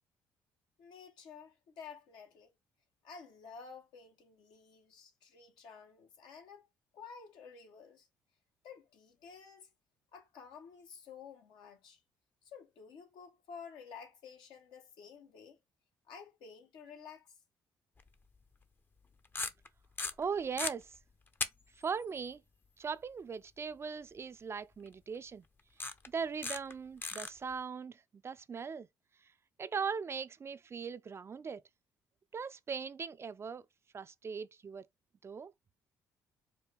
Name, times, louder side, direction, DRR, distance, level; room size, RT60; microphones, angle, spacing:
voice 1, 0.8-2.5 3.0-6.7 6.9-8.1 8.6-9.7 10.1-12.0 12.4-15.6 16.1-17.3, left 6 dB, 80° left, 1.1 m, -52 dB
sound 1, 18.0-18.1 19.2-19.7 20.0-20.7 21.4-21.5 21.8-21.9 24.9-25.0 25.8-26.1 26.4-26.7 27.0-27.3, left 3 dB, 25° left, 0.6 m, -36 dB
voice 2, 20.2-20.9 21.8-22.4 22.8-25.4 26.1-28.9 29.6-31.6 32.3-33.6 33.9-34.9 35.2-35.5, right 6 dB, 35° right, 0.3 m, -39 dB
4.5 x 2.2 x 3.3 m
supercardioid pair, 75°, 8 cm